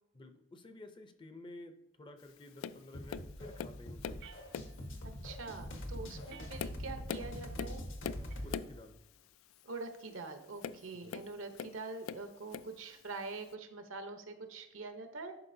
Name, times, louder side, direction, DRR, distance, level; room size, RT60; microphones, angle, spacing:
voice 1, 0.1-4.2 6.2-6.5 8.4-9.0 10.9-11.2, left 2 dB, 25° left, 7 dB, 0.5 m, -52 dB
Tap, 2.6-2.8 3.1-4.3 4.5-4.9 5.5-5.7 6.2-8.8 10.6-11.8 12.1-12.8 13.5-13.6, left 7 dB, 90° left, 0.3 m, -42 dB
sound 1, 2.9-8.6, left 1 dB, 70° left, 1.1 m, -44 dB
sound 2, 4.2-5.1 6.3-7.1 8.3-9.1, right 9 dB, 55° right, 0.6 m, -59 dB
voice 2, 5.0-7.8 9.6-15.3, right 3 dB, 80° right, 7 dB, 0.9 m, -45 dB
11.0 x 4.9 x 2.7 m, 0.95 s
head